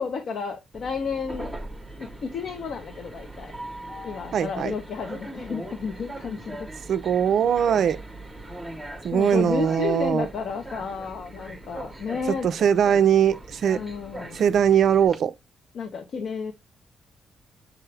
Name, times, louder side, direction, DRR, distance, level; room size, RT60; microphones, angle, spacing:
voice 1, 0.0-1.6 2.0-3.5 4.0-6.7 9.1-12.5 13.8-14.5 15.7-16.5, left 5 dB, 55° left, 0.6 m, -32 dB
Train, 0.7-15.2, right 1 dB, 5° right, 0.8 m, -40 dB
voice 2, 4.3-4.7 6.9-8.0 9.0-10.3 12.3-13.8 14.3-15.3, right 8 dB, 55° right, 0.4 m, -21 dB
6.8 x 2.3 x 3.2 m
wide cardioid pair, 175°, 0 cm